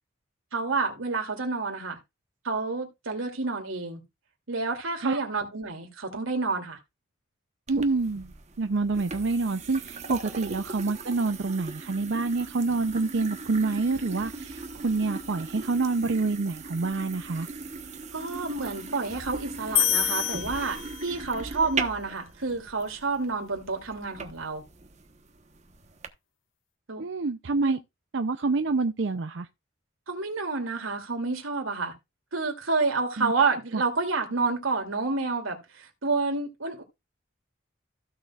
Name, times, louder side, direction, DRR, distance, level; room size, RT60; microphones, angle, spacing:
voice 1, 0.5-2.0 2.4-4.0 4.5-6.8 10.3-10.4 18.1-24.6 26.9-27.0 27.6-27.8 30.1-31.9 32.3-36.8, right 4 dB, 90° right, 2.8 m, -29 dB
sound 1, 7.7-26.1, right 4 dB, 35° right, 1.1 m, -39 dB
voice 2, 7.7-17.5 27.0-27.8 28.1-29.5 33.2-33.3 33.7-33.8, right 3 dB, 60° right, 0.6 m, -27 dB
sound 2, 19.8-21.4, left 11 dB, 75° left, 1.4 m, -27 dB
16.0 x 6.7 x 2.4 m
head